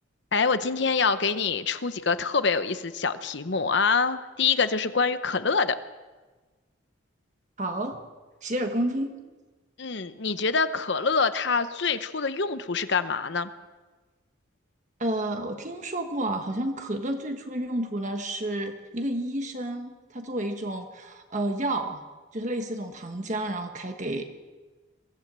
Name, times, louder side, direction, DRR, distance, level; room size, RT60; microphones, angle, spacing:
voice 1, 0.3-5.8 9.8-13.5, left 5 dB, 60° left, 11 dB, 0.9 m, -25 dB
voice 2, 7.6-8.0 8.4-9.1 15.0-22.0 22.3-24.2, right 1 dB, 35° right, 5 dB, 1.3 m, -30 dB
23.0 x 15.5 x 7.5 m, 1.3 s
head